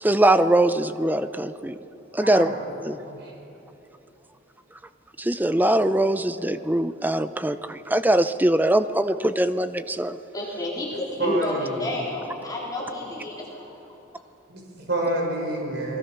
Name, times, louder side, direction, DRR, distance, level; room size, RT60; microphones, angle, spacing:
voice 1, 0.0-1.8 2.1-2.5 2.9-3.0 5.2-10.2 11.3-11.4, right 1 dB, 10° right, 11 dB, 0.6 m, -22 dB
voice 2, 2.2-2.6 3.1-3.3 11.2-11.9 14.5-16.0, right 1 dB, 60° right, 0 dB, 5.5 m, -28 dB
voice 3, 10.3-13.9, left 1 dB, 20° left, -5 dB, 4.2 m, -31 dB
28.0 x 21.0 x 6.0 m, 3.0 s
head